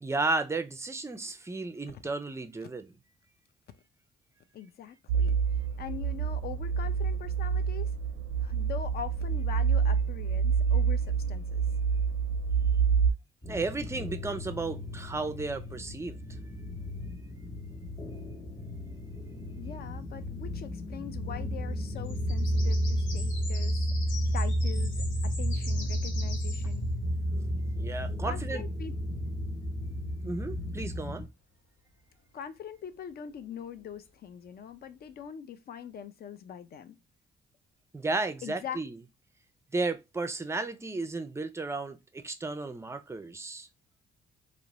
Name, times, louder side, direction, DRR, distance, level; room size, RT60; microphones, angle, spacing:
voice 1, 0.0-2.9 13.5-16.2 27.8-28.6 30.2-31.3 37.9-39.0 39.7-43.7, right 3 dB, 15° right, 0.4 m, -33 dB
voice 2, 4.5-5.4 5.8-7.9 8.4-11.6 19.6-23.8 24.3-26.9 28.2-28.9 32.3-37.0 38.4-38.8, left 8 dB, 50° left, 0.4 m, -42 dB
sound 1, 5.1-13.1, right 6 dB, 90° right, 0.4 m, -27 dB
sound 2, 13.4-31.2, equal, 15° left, 0.7 m, -32 dB
sound 3, 21.8-27.8 33.0-33.9, left 3 dB, 75° left, 1.0 m, -44 dB
2.4 x 2.0 x 3.0 m
cardioid pair, 90°, 20 cm